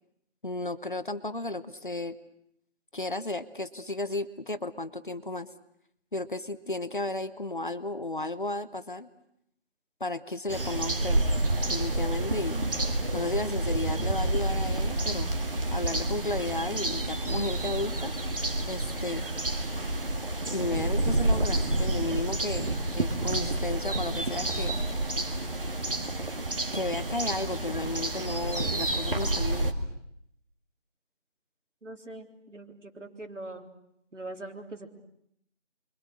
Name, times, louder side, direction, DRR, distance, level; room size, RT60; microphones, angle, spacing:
voice 1, 0.4-2.2 2.9-5.5 6.1-9.1 10.0-11.2 11.7-12.7 13.1-15.3 15.7-18.1 18.7-19.3 20.5-24.8 26.7-29.7, left 2 dB, 45° left, 13 dB, 1.0 m, -33 dB
sound 1, 10.5-29.7, right 1 dB, 50° right, 2.2 m, -29 dB
voice 2, 31.8-33.7 34.1-34.9, right 2 dB, 85° right, 4 dB, 3.6 m, -42 dB
29.5 x 23.5 x 6.5 m, 0.74 s
figure-of-eight pair, 175°, 36 cm